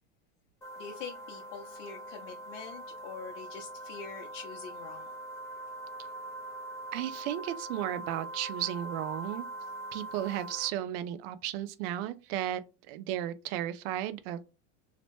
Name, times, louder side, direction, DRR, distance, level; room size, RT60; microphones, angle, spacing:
sound 1, 0.6-10.7, right 1 dB, 10° left, 0.4 m, -42 dB
voice 1, 0.8-5.1, left 6 dB, 80° left, 0.6 m, -44 dB
voice 2, 6.9-9.5 9.9-12.6 12.9-14.5, right 12 dB, 55° right, 0.5 m, -34 dB
2.8 x 2.0 x 3.0 m
supercardioid pair, 135°, 36 cm